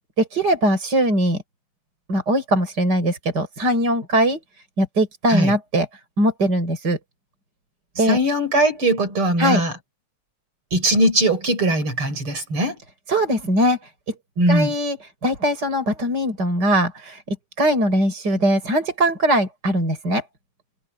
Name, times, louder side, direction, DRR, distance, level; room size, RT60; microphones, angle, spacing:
voice 1, 0.2-1.4 2.1-4.4 4.8-5.9 6.2-7.0 8.0-8.2 9.4-9.6 13.1-13.8 14.5-15.0 15.2-20.2, right 1 dB, 50° right, 7.1 m, -20 dB
voice 2, 8.0-9.7 10.7-12.7 14.4-14.7, right 1 dB, 80° right, 6.8 m, -20 dB
omnidirectional pair, 2.3 m